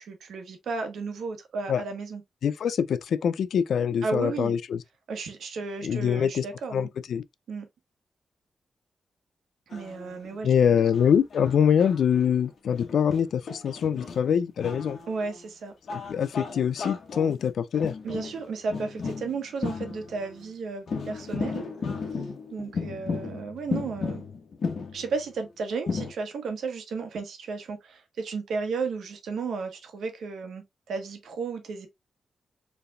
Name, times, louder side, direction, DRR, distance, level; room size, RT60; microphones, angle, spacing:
voice 1, 0.0-2.2 4.0-4.6 5.1-6.9 7.5-7.7 9.7-10.5 15.1-15.7 18.0-21.6 22.5-24.2 24.9-31.9, right 4 dB, 80° right, 1.1 m, -33 dB
voice 2, 2.4-4.8 5.8-6.4 6.7-7.2 10.4-15.0 16.1-17.9, left 8 dB, 75° left, 0.4 m, -24 dB
sound 1, 9.7-10.4 10.8-15.4 15.9-20.5 20.9-25.2 25.9-26.1, left 5 dB, 60° left, 1.1 m, -35 dB
4.6 x 3.3 x 2.3 m
wide cardioid pair, 145°, 0 cm